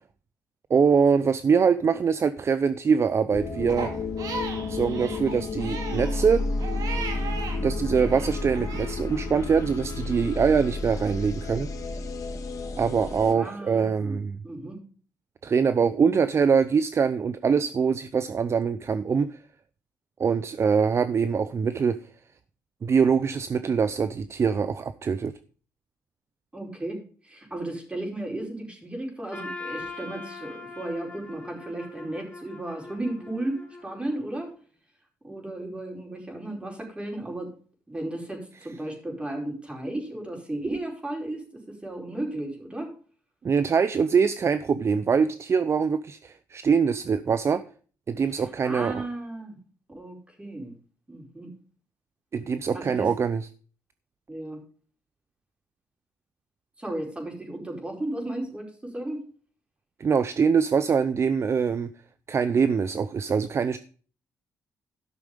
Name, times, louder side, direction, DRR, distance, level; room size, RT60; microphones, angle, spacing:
voice 1, 0.7-3.9 4.7-6.4 7.6-11.7 12.8-14.4 15.4-19.4 20.2-22.0 22.8-25.3 43.4-47.6 48.1-49.0 52.3-53.5 60.0-61.9 62.3-63.8, right 6 dB, 45° right, 13 dB, 0.7 m, -23 dB
sound 1, 3.3-13.3, left 3 dB, 60° left, 2.0 m, -31 dB
Crying sobbing, 3.7-7.6 7.9-9.0, right 4 dB, 70° right, 2.4 m, -37 dB
voice 2, 13.3-14.2 14.4-14.8 26.5-34.5 35.2-37.5 37.9-42.9 48.3-49.6 49.9-50.7 51.1-51.5 52.7-53.1 54.3-54.6 56.8-59.2, right 1 dB, 15° right, 1 dB, 4.8 m, -34 dB
Trumpet, 29.3-34.4, left 3 dB, 20° left, 5.0 m, -41 dB
12.0 x 6.2 x 5.2 m, 0.41 s
supercardioid pair, 70°, 6 cm